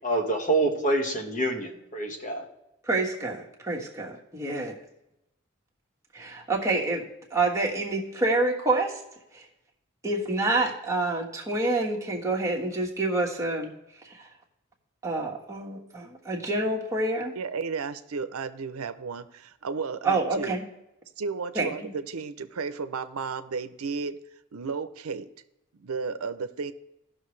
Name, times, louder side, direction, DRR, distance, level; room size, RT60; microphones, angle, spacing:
voice 1, 0.0-2.4, right 2 dB, 40° left, 2 dB, 1.4 m, -26 dB
voice 2, 2.8-4.8 6.1-9.0 9.3-9.4 10.0-13.7 14.0-14.3 15.0-17.3 20.0-20.6 21.5-21.7, right 2 dB, 15° right, -2 dB, 1.4 m, -27 dB
voice 3, 17.4-20.6 21.2-24.2 24.5-25.3 25.7-26.7, right 5 dB, 90° right, 11 dB, 0.6 m, -33 dB
16.5 x 6.1 x 3.2 m, 0.88 s
head